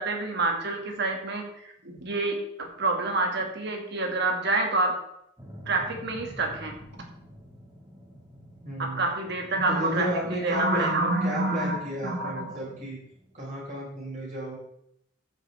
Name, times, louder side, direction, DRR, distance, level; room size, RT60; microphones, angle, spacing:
voice 1, 0.0-5.0 5.7-6.7 8.8-12.6, right 2 dB, 60° right, 2 dB, 2.1 m, -28 dB
sound 1, 5.4-13.6, equal, 15° right, 2.0 m, -49 dB
voice 2, 8.6-9.0 9.7-13.0 13.3-14.5, equal, 40° right, -5 dB, 4.7 m, -33 dB
14.0 x 7.9 x 3.5 m, 0.75 s
head